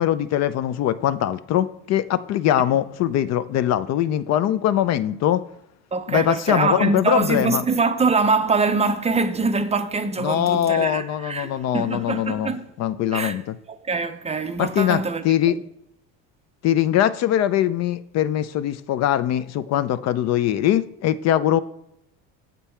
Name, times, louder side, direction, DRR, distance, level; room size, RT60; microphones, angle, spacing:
voice 1, 0.0-5.4 6.1-7.6 10.2-13.6 14.6-15.5 16.6-21.6, left 11 dB, 50° left, 0.4 m, -22 dB
voice 2, 5.9-12.7 13.1-13.4 13.7-15.2, right 4 dB, 20° right, 0.5 m, -23 dB
7.2 x 5.3 x 4.4 m
cardioid pair, 110°, 33 cm